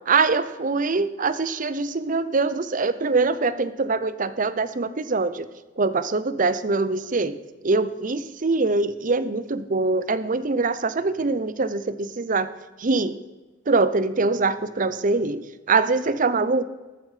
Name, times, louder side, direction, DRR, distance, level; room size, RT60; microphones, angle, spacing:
voice 1, 0.1-5.5 5.8-7.4 7.6-12.5 12.8-13.2 13.7-16.6, right 3 dB, 45° right, 13 dB, 0.7 m, -23 dB
14.0 x 9.3 x 5.0 m, 1.2 s
head